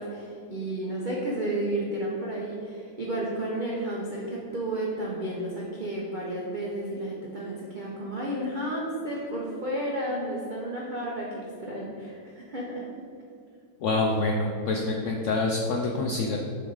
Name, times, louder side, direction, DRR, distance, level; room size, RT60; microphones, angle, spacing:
voice 1, 0.0-12.8, right 1 dB, 45° right, -4 dB, 0.6 m, -32 dB
voice 2, 13.8-16.4, left 2 dB, 85° left, 0 dB, 0.6 m, -26 dB
7.1 x 3.5 x 4.8 m, 2.4 s
omnidirectional pair, 1.9 m